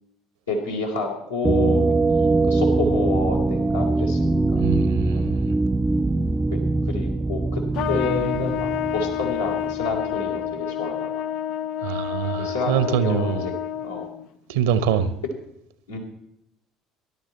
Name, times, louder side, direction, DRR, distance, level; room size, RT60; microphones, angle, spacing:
voice 1, 0.5-4.7 5.1-5.2 6.5-6.6 6.9-7.6 7.9-11.2 12.4-14.1 15.9-16.0, left 3 dB, 80° left, 3.3 m, -29 dB
sound 1, 1.4-10.1, right 3 dB, 15° right, 0.6 m, -22 dB
voice 2, 4.5-5.5 11.8-13.5 14.5-15.1, right 8 dB, 65° right, 1.0 m, -24 dB
Trumpet, 7.7-14.3, left 10 dB, 55° left, 0.5 m, -29 dB
19.5 x 11.5 x 4.2 m
figure-of-eight pair, 60°, 0 cm